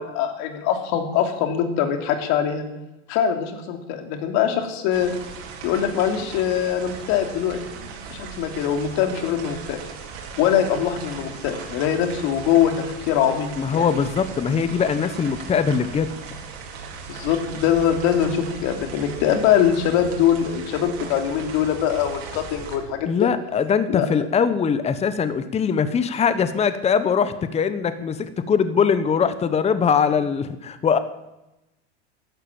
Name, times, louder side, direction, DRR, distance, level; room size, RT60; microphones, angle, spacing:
voice 1, 0.0-2.6 3.1-5.1 5.6-7.6 8.1-9.8 10.4-12.7 13.1-13.8 17.1-23.3 23.9-24.1, left 9 dB, 55° left, 5 dB, 3.2 m, -22 dB
sound 1, 4.9-22.8, right 5 dB, 70° right, 4.8 m, -38 dB
voice 2, 13.6-16.1 23.1-31.0, left 6 dB, 20° left, 12 dB, 1.0 m, -21 dB
14.0 x 11.5 x 8.8 m, 0.96 s
supercardioid pair, 125°, 33 cm